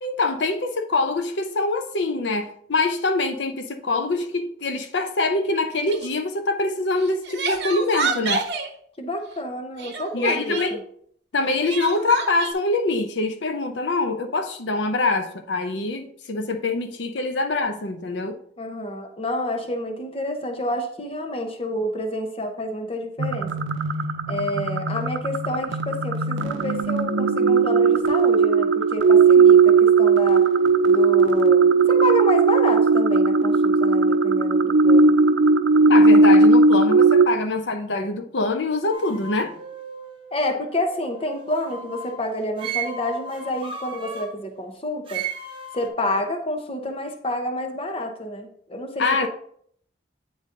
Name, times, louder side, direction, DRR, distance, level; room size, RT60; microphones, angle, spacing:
voice 1, 0.0-8.4 10.1-10.8 11.3-18.4 35.9-39.5 49.0-49.3, left 3 dB, 70° left, 0.7 m, -24 dB
Crying sobbing, 5.8-6.1 7.0-8.7 9.8-10.7 11.6-12.5, right 4 dB, 60° right, 0.9 m, -28 dB
voice 2, 9.0-10.8 18.6-23.5 24.3-30.5 30.9-35.2 40.3-45.2 45.7-49.3, left 1 dB, 30° left, 0.8 m, -29 dB
sound 1, 23.2-37.3, right 4 dB, 80° right, 0.5 m, -17 dB
sound 2, 38.9-42.2 42.6-44.3 45.1-45.9, right 5 dB, 30° right, 0.9 m, -35 dB
9.0 x 4.0 x 3.8 m
head